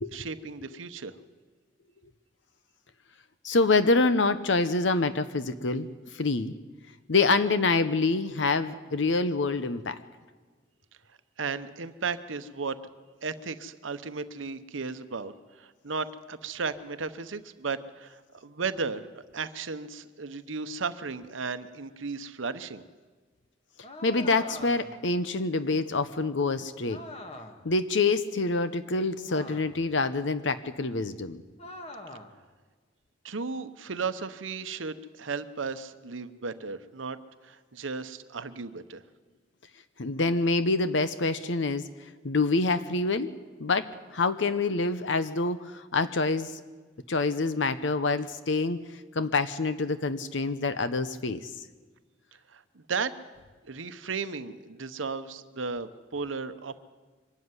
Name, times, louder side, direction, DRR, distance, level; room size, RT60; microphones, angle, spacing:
voice 1, 0.1-1.2 11.4-12.8 13.2-22.8 33.2-37.2 37.4-39.0 52.5-53.1 53.6-56.8, right 4 dB, 85° right, 11 dB, 0.9 m, -35 dB
voice 2, 3.4-6.5 7.1-10.0 24.0-27.0 27.6-31.4 40.0-41.9 42.2-43.3 43.6-46.6 47.1-48.8 49.1-51.5, left 3 dB, 70° left, 11 dB, 0.8 m, -26 dB
sound 1, 23.8-25.1 26.9-27.7 29.3-29.9 31.6-32.4, left 1 dB, 35° left, 1.7 m, -44 dB
24.0 x 13.5 x 9.7 m, 1.4 s
head